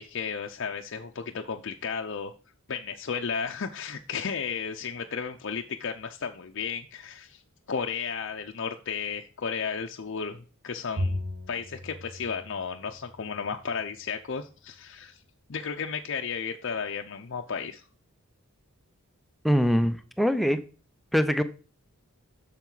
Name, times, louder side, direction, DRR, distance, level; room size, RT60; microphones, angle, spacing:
voice 1, 0.0-2.3 2.7-7.4 7.7-11.2 11.5-15.2 15.5-17.8, left 6 dB, 55° left, 4 dB, 0.6 m, -33 dB
Bowed string instrument, 11.0-13.5, left 1 dB, 65° right, 1.6 m, -35 dB
voice 2, 19.4-20.6 21.1-21.4, equal, ahead, 10 dB, 0.5 m, -23 dB
7.2 x 6.7 x 3.9 m, 0.37 s
head